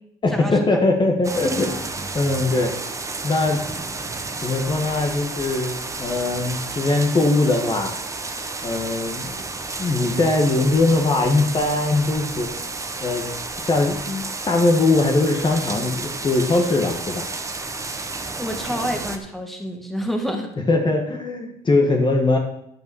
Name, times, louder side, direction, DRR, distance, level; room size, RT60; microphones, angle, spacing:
voice 1, 0.2-1.8 2.1-2.7 3.2-3.6 4.4-7.9 8.6-9.5 9.8-12.5 13.0-13.3 13.6-17.3 20.7-22.4, left 2 dB, 30° left, 1 dB, 1.6 m, -21 dB
sound 1, 1.2-19.2, right 3 dB, 20° right, 1.1 m, -31 dB
voice 2, 18.4-20.5, equal, ahead, 3 dB, 2.0 m, -28 dB
11.0 x 6.0 x 7.1 m, 0.77 s
cardioid pair, 110°, 17 cm